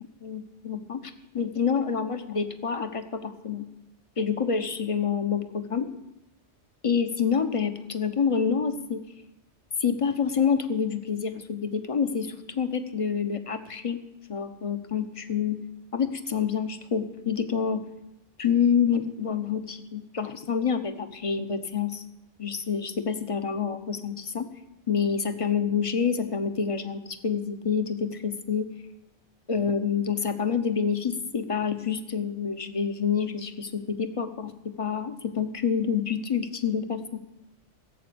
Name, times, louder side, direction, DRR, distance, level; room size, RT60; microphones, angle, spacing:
voice 1, 0.2-3.7 4.2-5.9 6.8-9.0 9.8-14.0 14.3-15.6 15.9-17.8 18.4-22.0 22.4-24.5 24.9-28.7 29.5-34.5 34.8-37.2, left 6 dB, 30° left, 8 dB, 0.9 m, -27 dB
16.0 x 8.1 x 6.9 m, 0.89 s
omnidirectional pair, 1.2 m